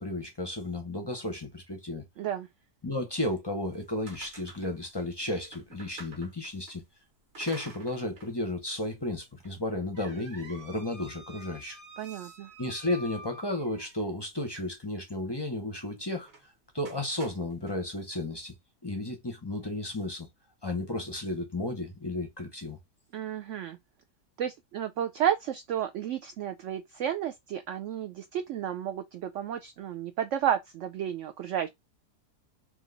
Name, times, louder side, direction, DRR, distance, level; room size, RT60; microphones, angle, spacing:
voice 1, 0.0-2.0 2.8-6.8 7.4-11.8 12.1-12.3 12.6-18.5 18.8-20.3 20.6-22.8, left 1 dB, 30° left, 0.4 m, -33 dB
voice 2, 2.2-2.5 12.0-12.5 23.1-23.8 24.4-31.7, right 10 dB, 75° right, 0.6 m, -32 dB
sound 1, 3.7-6.8 7.3-8.3 8.7-8.8 9.4-14.1 16.2-16.5 16.8-17.8, right 2 dB, 45° right, 1.5 m, -49 dB
3.7 x 3.0 x 3.8 m
omnidirectional pair, 1.8 m